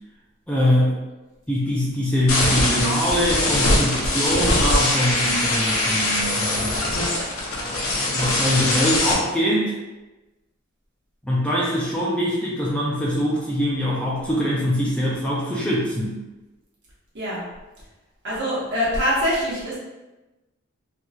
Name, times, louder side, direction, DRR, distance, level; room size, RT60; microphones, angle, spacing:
voice 1, 0.5-0.9 1.5-6.9 7.5-9.7 11.2-16.2, equal, 5° left, -6 dB, 0.5 m, -23 dB
sound 1, 2.3-9.1, left 1 dB, 80° left, 0.8 m, -22 dB
voice 2, 17.1-17.5 18.2-19.8, equal, 60° right, -7 dB, 1.2 m, -24 dB
3.0 x 2.8 x 2.3 m, 1.1 s
head